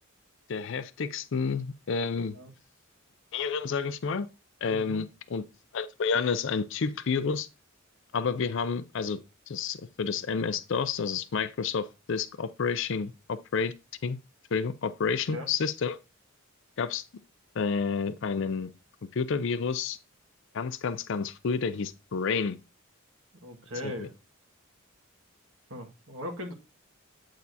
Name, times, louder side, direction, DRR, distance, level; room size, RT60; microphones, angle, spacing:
voice 1, 0.5-2.4 3.3-4.3 4.6-5.1 5.3-5.4 5.7-7.5 8.1-9.2 9.5-13.7 14.0-14.2 14.5-16.0 16.8-17.0 17.6-18.7 19.1-20.0 20.5-22.6 23.8-24.1, left 5 dB, 60° left, 0.4 m, -30 dB
voice 2, 4.7-5.0 15.1-15.5 23.4-24.2 25.7-26.5, left 1 dB, 60° right, 1.7 m, -39 dB
8.4 x 6.5 x 2.7 m
head